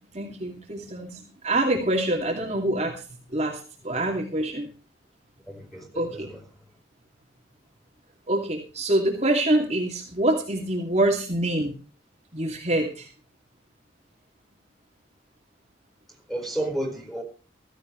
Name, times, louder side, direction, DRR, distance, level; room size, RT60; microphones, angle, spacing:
voice 1, 0.1-4.7 5.9-6.3 8.3-11.7 12.3-13.1, right 1 dB, 35° right, 2.6 m, -26 dB
voice 2, 5.5-6.4 16.3-17.2, right 1 dB, ahead, 4.8 m, -32 dB
16.0 x 15.5 x 3.3 m
head